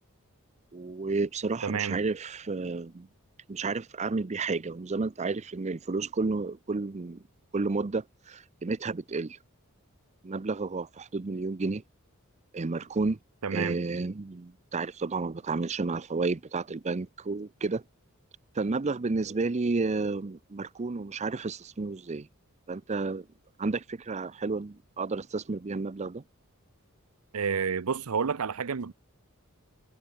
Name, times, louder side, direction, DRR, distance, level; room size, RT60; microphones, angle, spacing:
voice 1, 0.7-3.1 3.5-7.2 7.5-9.4 10.2-11.8 12.5-13.2 13.5-17.8 18.5-22.3 22.7-23.3 23.6-26.2, right 3 dB, 30° right, 0.5 m, -31 dB
voice 2, 1.6-2.0 13.4-13.8 27.3-28.9, right 6 dB, 80° right, 0.7 m, -30 dB
head